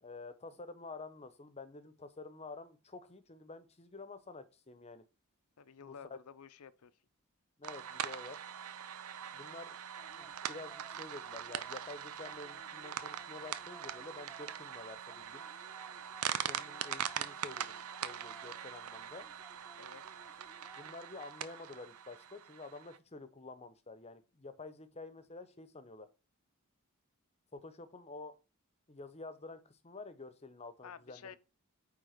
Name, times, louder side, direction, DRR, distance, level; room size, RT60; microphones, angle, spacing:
voice 1, 0.0-5.0 5.8-6.2 7.6-8.4 9.3-9.8 10.2-15.4 16.4-19.3 20.8-26.1 27.5-28.4 28.9-31.4, left 3 dB, 30° left, 0.8 m, -49 dB
voice 2, 5.6-6.9 19.8-20.0 30.8-31.4, left 7 dB, 85° left, 0.6 m, -52 dB
sound 1, 7.6-23.0, right 9 dB, 85° right, 0.6 m, -42 dB
sound 2, 10.0-21.0, right 2 dB, 10° right, 0.6 m, -60 dB
9.0 x 3.6 x 5.1 m
head